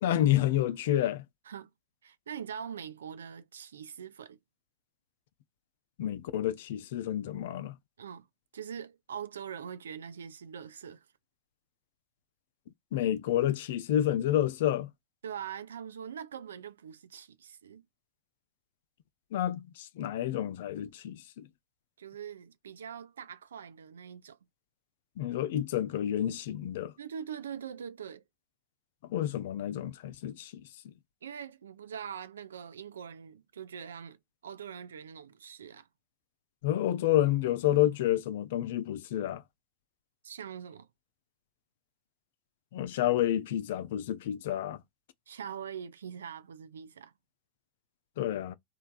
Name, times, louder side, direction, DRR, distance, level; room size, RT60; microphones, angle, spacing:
voice 1, 0.0-1.2 6.0-7.8 12.9-14.9 19.3-19.6 20.0-21.5 25.2-26.9 29.1-30.5 36.6-39.4 42.7-44.8 48.2-48.5, left 12 dB, 65° left, 0.4 m, -29 dB
voice 2, 2.0-4.4 8.0-8.3 8.5-11.0 15.2-17.8 22.0-24.4 27.0-28.2 31.2-34.2 34.4-35.9 40.2-40.9 45.3-47.1, right 8 dB, 80° right, 0.4 m, -43 dB
3.2 x 2.3 x 2.4 m
hypercardioid pair, 95°, 0 cm